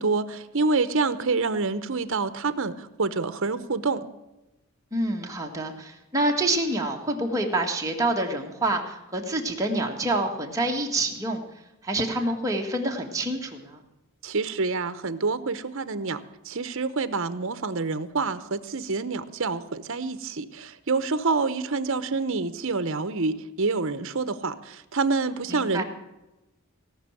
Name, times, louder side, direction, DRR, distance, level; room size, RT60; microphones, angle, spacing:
voice 1, 0.0-4.1 14.2-25.8, right 4 dB, 60° right, 12 dB, 0.8 m, -27 dB
voice 2, 4.9-11.4 11.8-13.8 25.5-25.8, right 2 dB, 15° right, 1 dB, 1.7 m, -27 dB
18.0 x 6.2 x 8.9 m, 0.99 s
head